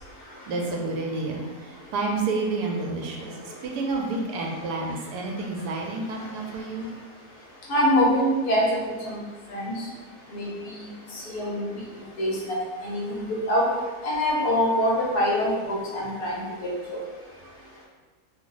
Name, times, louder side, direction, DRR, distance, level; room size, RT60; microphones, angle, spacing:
voice 1, 0.5-6.9, right 3 dB, 80° right, 1 dB, 1.1 m, -30 dB
voice 2, 7.7-9.2 9.5-9.9 10.3-11.8 12.2-13.7 14.0-17.0, equal, 75° left, -4 dB, 1.3 m, -25 dB
3.0 x 2.0 x 3.7 m, 1.3 s
omnidirectional pair, 1.7 m